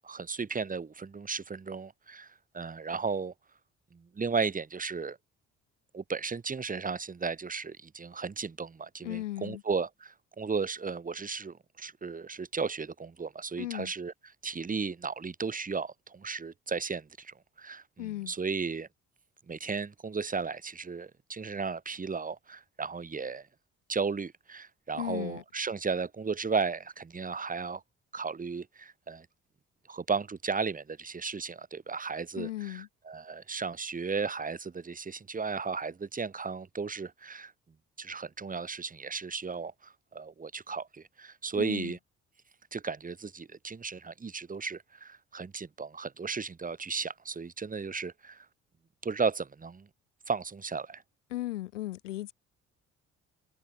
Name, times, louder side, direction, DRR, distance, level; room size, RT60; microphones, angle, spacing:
voice 1, 0.0-2.3 2.5-3.3 3.9-5.2 5.9-14.1 14.4-18.9 19.5-23.4 23.9-27.8 28.1-29.3 29.9-32.5 33.1-37.5 38.0-39.7 40.1-42.0 42.7-48.4 49.0-49.9 50.3-51.0, right 5 dB, 20° right, 1.1 m, -35 dB
voice 2, 9.0-9.6 13.5-13.9 18.0-18.4 24.9-25.4 32.3-32.9 41.5-42.0 51.3-52.3, left 15 dB, 85° left, 0.6 m, -36 dB
figure-of-eight pair, 45°, 36 cm